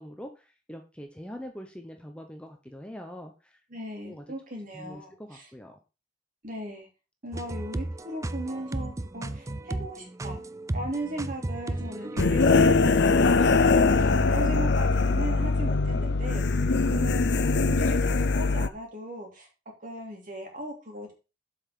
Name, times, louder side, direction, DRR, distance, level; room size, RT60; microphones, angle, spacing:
voice 1, 0.0-3.6 4.0-4.2 4.7-5.8, equal, 5° left, 4 dB, 0.9 m, -43 dB
voice 2, 3.7-5.5 6.4-6.9 7.2-10.4 10.7-16.6 16.8-17.2 17.6-19.5 19.8-21.1, right 1 dB, 45° right, 1 dB, 3.2 m, -38 dB
sound 1, 7.3-12.5, right 1 dB, 15° right, 0.4 m, -34 dB
sound 2, 12.2-18.7, left 3 dB, 60° left, 0.6 m, -22 dB
7.9 x 5.8 x 5.2 m, 0.30 s
head